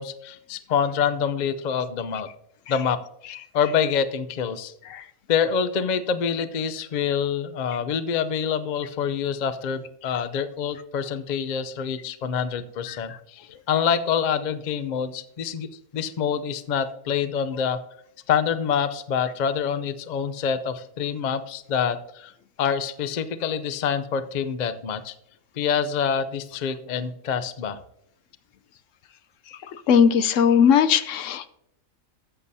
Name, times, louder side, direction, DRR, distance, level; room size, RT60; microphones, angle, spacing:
voice 1, 0.0-2.3 2.7-3.0 3.3-4.7 5.3-17.8 18.3-22.3 22.6-25.1 25.5-27.8, left 7 dB, 50° left, 11 dB, 0.5 m, -26 dB
voice 2, 29.9-31.5, left 7 dB, 70° left, 12 dB, 0.9 m, -18 dB
13.5 x 7.9 x 2.7 m, 0.74 s
omnidirectional pair, 1.4 m